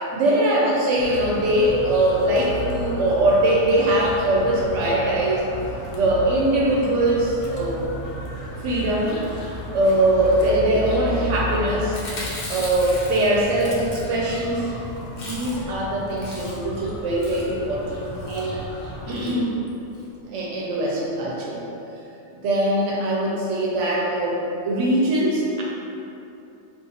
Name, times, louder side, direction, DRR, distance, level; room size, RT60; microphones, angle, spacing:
voice 1, 0.1-5.4 6.0-7.8 8.6-9.2 9.7-12.0 12.5-14.6 15.3-18.0 18.3-18.6 19.1-19.5 20.3-21.7 22.4-25.6, right 1 dB, 85° right, -4 dB, 0.9 m, -21 dB
sound 1, 1.0-19.1, equal, 75° left, 0.9 m, -34 dB
Chewing mastication, 11.8-14.4 14.8-14.9 15.1-15.8 16.1-16.8 17.2-17.5 18.1-18.4 19.1-19.3 19.7-19.8 19.9-20.0, left 1 dB, 50° left, 0.6 m, -37 dB
2.8 x 2.4 x 3.8 m, 2.8 s
omnidirectional pair, 1.2 m